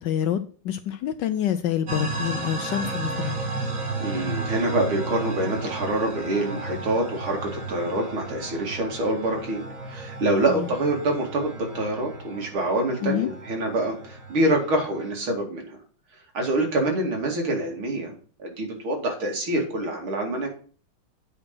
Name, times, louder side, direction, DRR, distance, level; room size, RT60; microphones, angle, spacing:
voice 1, 0.0-3.4 10.5-10.7 13.0-13.3, left 10 dB, 70° left, 11 dB, 1.1 m, -27 dB
sound 1, 1.9-15.1, right 2 dB, 45° right, 1.7 m, -34 dB
voice 2, 4.0-15.8 16.3-18.1 18.4-20.5, right 1 dB, 75° right, 1 dB, 3.4 m, -26 dB
8.4 x 5.4 x 6.1 m, 0.41 s
omnidirectional pair, 2.3 m